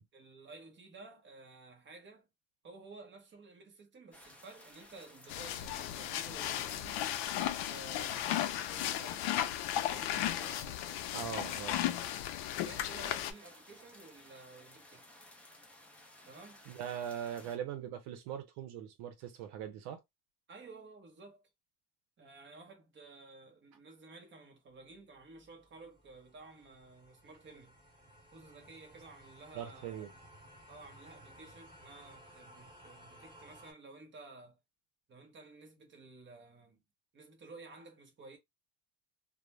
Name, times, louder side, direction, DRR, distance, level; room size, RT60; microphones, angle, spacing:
voice 1, 0.1-2.3 2.6-7.1 7.3-9.5 9.9-11.5 12.6-15.1 16.2-16.6 17.4-17.5 20.5-21.4 22.2-27.7 28.3-29.9 30.7-34.6 35.1-36.8 37.1-38.4, right 3 dB, 30° right, 0.9 m, -54 dB
sound 1, 4.1-17.6, left 1 dB, 5° left, 0.4 m, -57 dB
sound 2, 5.3-13.3, left 12 dB, 70° left, 0.5 m, -35 dB
voice 2, 11.1-11.8 16.7-20.0 29.5-30.1, right 9 dB, 85° right, 0.8 m, -41 dB
sound 3, 25.0-33.7, equal, 10° right, 1.3 m, -58 dB
2.4 x 2.1 x 3.0 m
cardioid pair, 140°, 41 cm